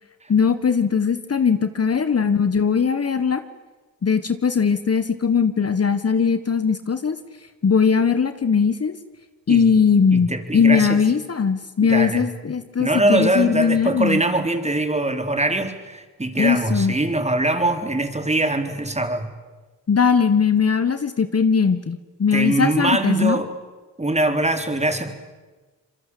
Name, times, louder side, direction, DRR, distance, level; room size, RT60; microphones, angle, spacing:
voice 1, 0.3-3.4 4.0-7.2 7.6-9.0 9.5-14.2 16.4-16.9 19.9-23.4, left 6 dB, 40° left, 11 dB, 1.5 m, -19 dB
voice 2, 10.1-11.0 11.8-12.3 12.8-19.3 22.3-23.5 24.0-25.1, right 2 dB, 20° right, 7 dB, 3.8 m, -22 dB
26.0 x 22.5 x 8.6 m, 1.3 s
supercardioid pair, 50°, 37 cm